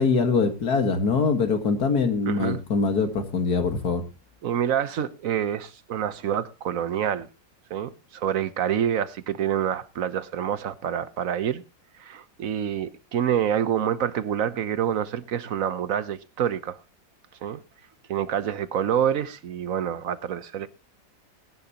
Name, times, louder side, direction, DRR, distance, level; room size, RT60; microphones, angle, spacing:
voice 1, 0.0-4.0, left 4 dB, 60° left, 2.2 m, -23 dB
voice 2, 2.3-2.6 4.4-7.3 7.7-11.6 12.0-16.8 17.4-17.6 18.1-20.7, right 9 dB, 55° right, 1.1 m, -27 dB
20.5 x 10.5 x 2.9 m
omnidirectional pair, 1.9 m